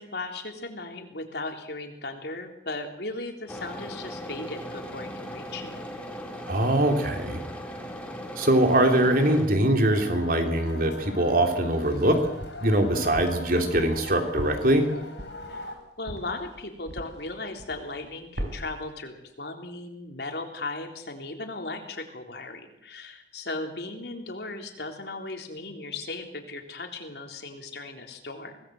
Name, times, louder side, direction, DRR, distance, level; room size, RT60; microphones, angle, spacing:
voice 1, 0.0-5.8 15.5-15.7 16.0-28.5, left 2 dB, 65° left, 4 dB, 3.8 m, -37 dB
sound 1, 3.5-9.5, equal, 5° left, 3.6 m, -38 dB
voice 2, 6.5-7.4 8.4-12.1 12.6-14.9, right 1 dB, 50° right, 4 dB, 3.5 m, -22 dB
sound 2, 9.8-15.7, left 2 dB, 85° left, 6.1 m, -41 dB
sound 3, 11.7-12.7 13.1-17.3 17.6-18.1 18.4-18.9, equal, 85° right, 4.8 m, -38 dB
24.5 x 18.5 x 7.9 m, 0.81 s
head